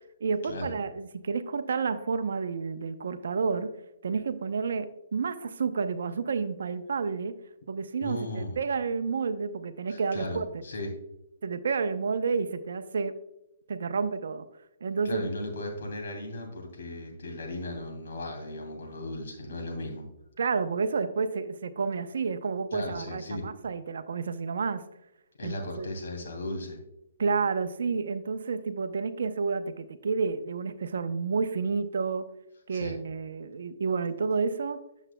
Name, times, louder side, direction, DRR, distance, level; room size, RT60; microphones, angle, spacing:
voice 1, 0.2-3.7 4.0-7.3 7.7-10.4 11.4-13.1 13.7-14.4 14.8-15.3 20.4-24.8 25.4-25.9 27.2-32.2 32.7-34.8, right 5 dB, 75° right, 11 dB, 0.6 m, -30 dB
voice 2, 8.0-8.6 9.9-10.9 15.0-20.1 22.7-23.5 25.4-26.8 32.7-32.9, left 1 dB, 70° left, 1 dB, 2.6 m, -36 dB
9.0 x 7.2 x 2.2 m, 0.86 s
hypercardioid pair, 150°, 0 cm